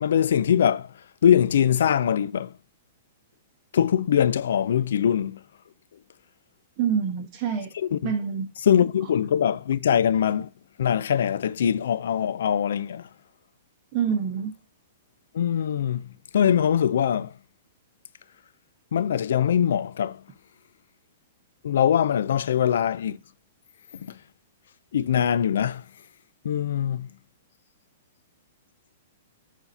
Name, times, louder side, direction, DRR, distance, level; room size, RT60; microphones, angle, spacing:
voice 1, 0.0-0.9 1.2-2.5 3.7-5.4 7.7-8.1 8.6-10.5 10.8-13.1 15.3-16.1 16.3-17.3 18.9-20.2 21.6-23.2 24.0-24.1 24.9-25.8 26.4-27.1, left 9 dB, 75° left, 0.3 m, -22 dB
voice 2, 6.8-7.7 8.0-8.5 13.9-14.5, right 7 dB, 30° right, 1.1 m, -26 dB
7.0 x 2.7 x 5.4 m
hypercardioid pair, 160°, 0 cm